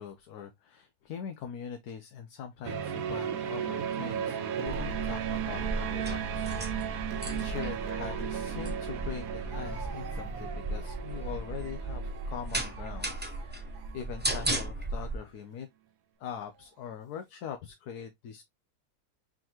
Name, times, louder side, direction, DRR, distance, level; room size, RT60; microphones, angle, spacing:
voice 1, 0.0-7.0 7.4-15.7 16.2-18.4, left 8 dB, 80° left, 1.3 m, -42 dB
sound 1, 2.6-14.0, right 9 dB, 65° right, 1.1 m, -36 dB
sound 2, 4.7-15.2, right 2 dB, 15° right, 0.4 m, -36 dB
Speech, 9.5-14.4 15.2-15.4 16.4-16.9, right 4 dB, 85° right, 1.5 m, -51 dB
4.7 x 3.8 x 2.9 m
omnidirectional pair, 1.7 m